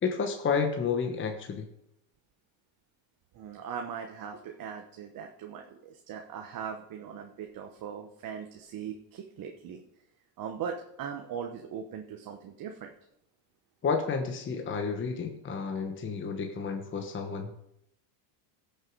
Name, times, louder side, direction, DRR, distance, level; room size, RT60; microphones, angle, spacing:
voice 1, 0.0-1.7 13.8-17.5, left 5 dB, 25° left, 4 dB, 1.1 m, -31 dB
voice 2, 3.3-9.8 10.4-12.9, right 7 dB, 45° right, 4 dB, 1.2 m, -40 dB
16.0 x 6.8 x 4.7 m, 0.81 s
supercardioid pair, 125°, 49 cm